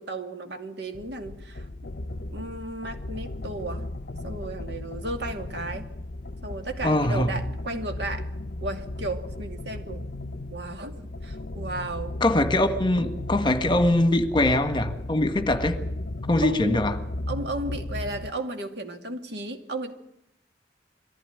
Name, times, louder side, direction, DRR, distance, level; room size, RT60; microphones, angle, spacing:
voice 1, 0.0-1.7 2.3-3.9 4.2-5.9 6.4-8.3 8.6-10.1 10.5-12.2 16.4-16.8 17.3-19.9, right 2 dB, 70° right, 2.5 m, -34 dB
sound 1, 0.9-18.4, left 1 dB, 55° left, 0.8 m, -35 dB
voice 2, 6.8-7.3 12.2-15.8 16.3-17.0, left 1 dB, 25° left, 1.6 m, -22 dB
22.5 x 15.5 x 9.6 m
head